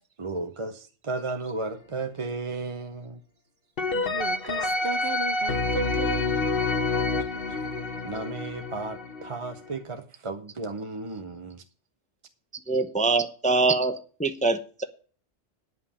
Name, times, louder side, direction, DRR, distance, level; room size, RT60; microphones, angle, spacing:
voice 1, 0.2-3.2 4.5-4.7 5.0-5.1 7.1-7.6 8.0-11.6, right 3 dB, 30° right, 0.6 m, -34 dB
sound 1, 3.8-9.7, left 3 dB, 50° left, 1.4 m, -28 dB
voice 2, 3.9-6.6, right 4 dB, 55° right, 1.0 m, -36 dB
voice 3, 12.7-14.8, right 3 dB, 10° left, 0.6 m, -24 dB
9.4 x 5.6 x 8.3 m
omnidirectional pair, 1.3 m